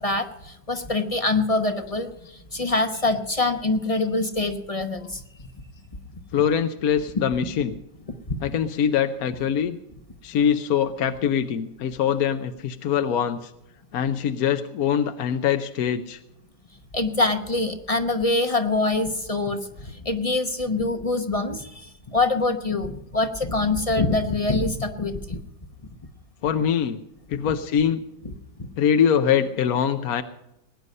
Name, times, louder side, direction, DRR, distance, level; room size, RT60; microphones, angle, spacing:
voice 1, 0.0-5.5 8.1-8.4 16.9-25.4 28.6-28.7, left 2 dB, 30° left, 7 dB, 0.7 m, -25 dB
voice 2, 6.3-7.8 8.4-9.8 10.2-13.5 13.9-16.2 26.4-27.0 27.3-28.0 28.8-30.2, left 8 dB, 65° left, 8 dB, 1.1 m, -23 dB
20.5 x 9.7 x 5.4 m, 0.87 s
omnidirectional pair, 1.9 m